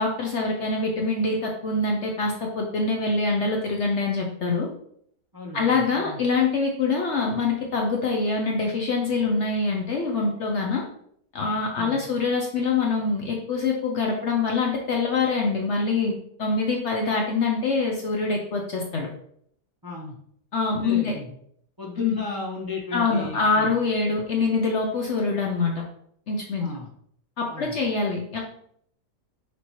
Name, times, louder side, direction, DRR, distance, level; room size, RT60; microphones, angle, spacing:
voice 1, 0.0-4.7 5.5-10.8 11.3-16.1 16.4-19.1 20.5-21.1 22.0-22.2 22.9-25.7 26.3-26.7 27.4-28.4, left 4 dB, 60° left, 0 dB, 0.8 m, -24 dB
voice 2, 5.3-6.2 11.8-12.1 19.8-20.2 20.8-21.4 21.8-23.7 26.6-26.9 27.5-27.8, left 3 dB, 30° right, -3 dB, 0.4 m, -35 dB
6.1 x 2.7 x 3.0 m, 0.67 s
omnidirectional pair, 1.8 m